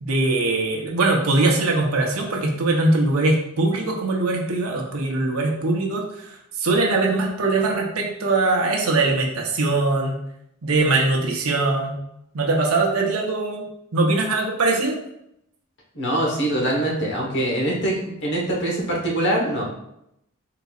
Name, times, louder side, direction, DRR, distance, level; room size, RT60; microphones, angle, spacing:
voice 1, 0.0-10.2 10.6-12.0 12.3-13.7 13.9-15.0, right 2 dB, 85° right, 0 dB, 0.8 m, -21 dB
voice 2, 15.9-19.6, right 1 dB, 55° left, -2 dB, 1.2 m, -23 dB
4.0 x 3.8 x 2.4 m, 0.80 s
head